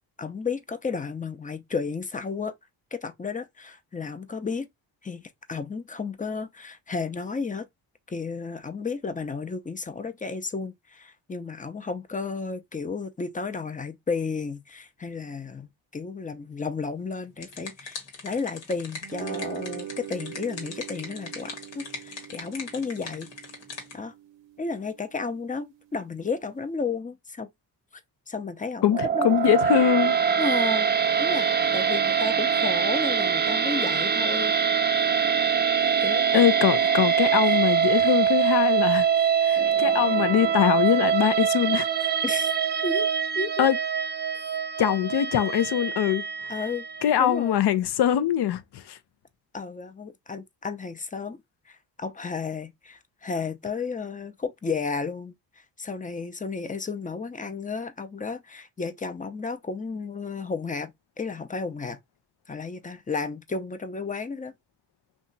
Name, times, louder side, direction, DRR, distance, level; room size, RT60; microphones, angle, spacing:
voice 1, 0.2-2.5 2.9-4.7 5.0-5.2 5.5-7.7 8.1-23.3 23.9-24.1 24.6-27.5 28.3-28.8 29.1-29.4 30.4-30.9 31.2-34.6 36.0-36.2 36.8-36.9 42.2-42.5 42.8-43.1 43.3-43.7 46.5-46.8 47.2-47.6 49.5-51.4 51.7-62.0 62.5-64.5, left 4 dB, 20° left, 0.6 m, -33 dB
sound 1, 17.1-24.0, left 3 dB, 80° left, 1.2 m, -40 dB
sound 2, 19.0-25.5, right 12 dB, 80° right, 0.6 m, -42 dB
voice 2, 28.8-30.2 36.3-39.1 39.4-41.9 43.6-43.8 44.8-46.5 47.0-49.0, left 10 dB, 65° left, 0.6 m, -23 dB
sound 3, 28.9-47.1, right 7 dB, 25° right, 0.4 m, -24 dB
2.7 x 2.4 x 3.8 m
supercardioid pair, 55°, 44 cm